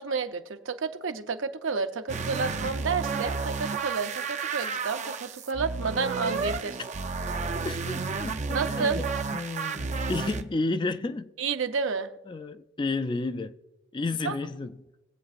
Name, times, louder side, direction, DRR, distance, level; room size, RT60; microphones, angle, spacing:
voice 1, 0.0-6.8 8.5-9.1 11.4-12.1 14.2-14.4, right 5 dB, 85° right, 0.7 m, -30 dB
sound 1, 2.1-10.4, right 4 dB, 35° right, 0.5 m, -32 dB
voice 2, 7.6-9.1 9.3-11.3 12.3-13.6 13.9-14.9, left 3 dB, 25° left, 0.3 m, -32 dB
21.5 x 8.2 x 2.5 m
head